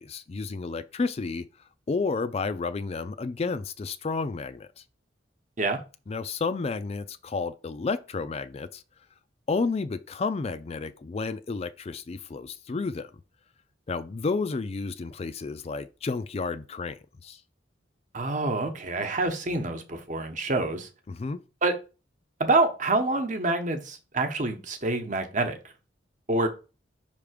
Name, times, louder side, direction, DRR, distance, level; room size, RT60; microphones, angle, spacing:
voice 1, 0.0-1.5 1.9-4.8 6.1-8.8 9.5-13.1 13.9-17.4 21.1-21.4, left 4 dB, 35° left, 0.4 m, -31 dB
voice 2, 18.1-20.9 21.6-21.7 22.4-25.6 26.3-26.5, right 2 dB, 40° right, 1.0 m, -26 dB
5.6 x 3.5 x 5.0 m
head